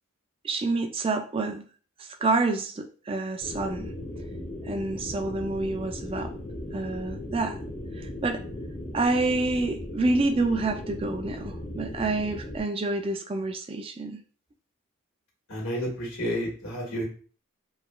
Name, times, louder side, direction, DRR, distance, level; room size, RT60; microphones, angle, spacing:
voice 1, 0.4-1.6 2.0-3.9 4.6-6.3 6.7-7.6 8.0-8.4 8.9-14.2, right 3 dB, 25° right, 5 dB, 0.3 m, -28 dB
sound 1, 3.4-12.6, left 1 dB, 30° left, 0.6 m, -37 dB
voice 2, 15.5-17.0, equal, 80° left, -2 dB, 2.0 m, -30 dB
4.7 x 3.1 x 2.3 m, 0.41 s
head